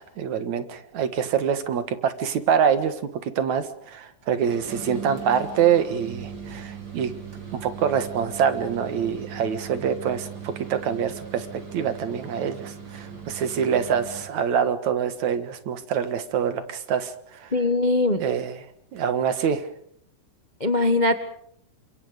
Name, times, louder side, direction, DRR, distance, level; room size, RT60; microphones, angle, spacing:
voice 1, 0.0-2.9 3.2-7.1 7.6-11.5 11.7-17.5 18.2-18.7 18.9-19.7, right 7 dB, 70° right, 10 dB, 2.8 m, -25 dB
sound 1, 4.3-14.4, right 7 dB, 35° right, 4.8 m, -39 dB
voice 2, 17.5-18.2 20.6-21.1, left 2 dB, 60° left, 8 dB, 0.4 m, -21 dB
29.5 x 26.5 x 5.1 m, 0.67 s
omnidirectional pair, 3.5 m